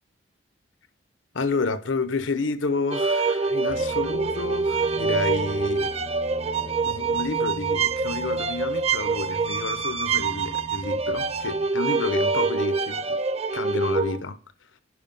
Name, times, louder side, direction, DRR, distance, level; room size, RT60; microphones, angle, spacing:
voice 1, 1.3-6.0 6.8-13.2 13.5-14.4, left 3 dB, 90° left, 0.9 m, -30 dB
sound 1, 2.9-14.2, right 4 dB, 35° right, 0.6 m, -25 dB
sound 2, 3.7-11.7, left 2 dB, 30° left, 0.5 m, -41 dB
11.0 x 5.2 x 5.4 m
head